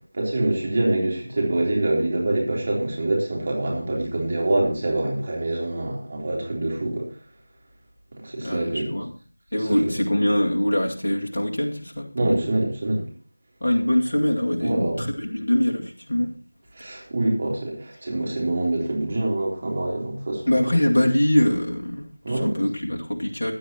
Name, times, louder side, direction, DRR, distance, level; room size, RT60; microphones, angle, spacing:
voice 1, 0.1-7.1 8.2-8.9 9.5-9.9 12.1-13.1 14.6-15.1 16.7-20.4 22.2-22.6, right 2 dB, 30° right, -2 dB, 3.5 m, -25 dB
voice 2, 8.4-9.1 9.5-12.4 13.6-16.3 16.9-17.0 20.5-23.5, left 1 dB, 50° left, -1 dB, 2.3 m, -23 dB
15.5 x 9.3 x 3.0 m, 0.41 s
figure-of-eight pair, 170°, 0 cm